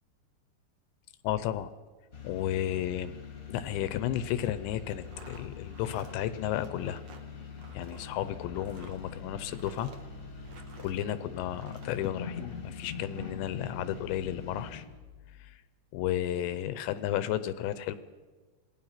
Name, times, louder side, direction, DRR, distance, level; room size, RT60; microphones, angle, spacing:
voice 1, 1.2-1.7 2.2-3.2 3.5-7.0 7.7-9.9 10.8-14.8 15.4-15.6 15.9-18.0, left 12 dB, 80° left, 13 dB, 2.7 m, -33 dB
sound 1, 2.1-14.8, left 5 dB, 35° left, 1.3 m, -44 dB
sound 2, 5.0-11.1 11.5-12.1, right 5 dB, 70° right, 1.6 m, -53 dB
27.5 x 19.5 x 5.8 m, 1.4 s
omnidirectional pair, 5.7 m